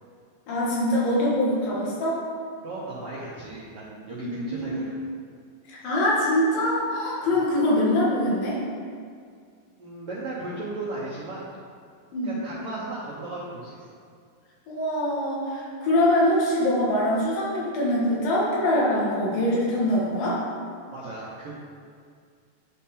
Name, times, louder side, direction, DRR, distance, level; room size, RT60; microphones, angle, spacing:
voice 1, 0.5-2.2 4.2-4.7 5.7-8.6 12.1-12.3 14.7-20.4, left 1 dB, 80° left, -6 dB, 3.3 m, -23 dB
voice 2, 2.6-5.0 7.2-7.4 9.8-11.5 12.2-14.0 20.9-21.5, right 2 dB, 85° right, -7 dB, 1.3 m, -36 dB
10.5 x 3.7 x 4.3 m, 2.2 s
omnidirectional pair, 4.0 m